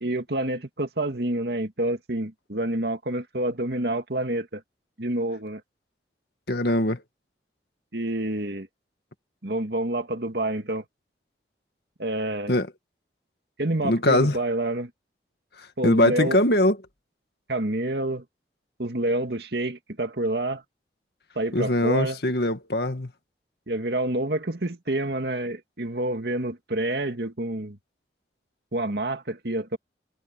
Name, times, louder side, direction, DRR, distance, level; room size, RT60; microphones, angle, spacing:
voice 1, 0.0-4.6 5.0-5.6 7.9-8.7 9.4-10.8 12.0-12.5 13.6-14.9 15.8-16.4 17.5-18.2 18.8-20.6 21.4-22.2 23.7-27.8 28.7-29.8, right 1 dB, 65° right, 2.2 m, -28 dB
voice 2, 6.5-7.0 12.5-12.7 13.8-14.4 15.6-16.8 21.5-23.1, left 1 dB, 65° left, 1.9 m, -22 dB
head